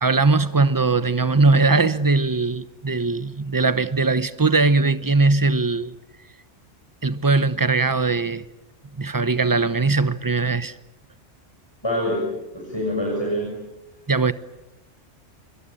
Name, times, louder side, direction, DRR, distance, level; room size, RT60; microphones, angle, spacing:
voice 1, 0.0-5.9 7.0-8.4 9.0-10.7 14.1-14.3, right 3 dB, 20° right, 0.9 m, -20 dB
voice 2, 11.8-13.6, equal, 20° left, 6.9 m, -26 dB
26.5 x 24.0 x 8.7 m
omnidirectional pair, 1.2 m